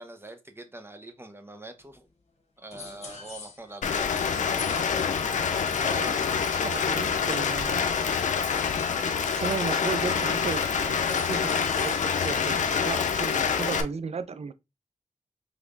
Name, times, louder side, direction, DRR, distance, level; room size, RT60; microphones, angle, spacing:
voice 1, 0.0-2.1 2.6-4.5, right 2 dB, 20° right, 0.9 m, -44 dB
sound 1, 1.9-2.0 2.7-4.0 4.5-5.9 8.2-12.4, left 4 dB, 60° left, 1.2 m, -44 dB
Rain, 3.8-13.8, left 6 dB, 85° left, 0.5 m, -26 dB
voice 2, 5.8-6.2 6.6-7.8 9.3-14.5, right 5 dB, 60° right, 0.5 m, -35 dB
4.9 x 3.3 x 2.5 m
cardioid pair, 45°, 12 cm